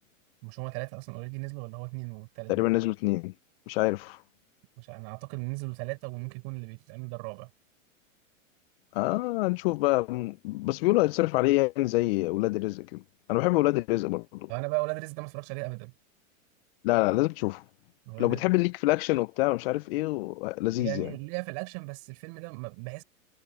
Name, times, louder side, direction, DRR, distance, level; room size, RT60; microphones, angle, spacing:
voice 1, 0.4-2.6 4.8-7.5 14.5-15.9 18.1-18.4 20.7-23.0, right 35 dB, 45° right, 5.7 m, -36 dB
voice 2, 2.5-3.3 3.7-4.2 8.9-13.0 13.3-14.5 16.8-17.6 18.2-21.1, left 21 dB, 45° left, 0.5 m, -26 dB
hypercardioid pair, 140°, 40 cm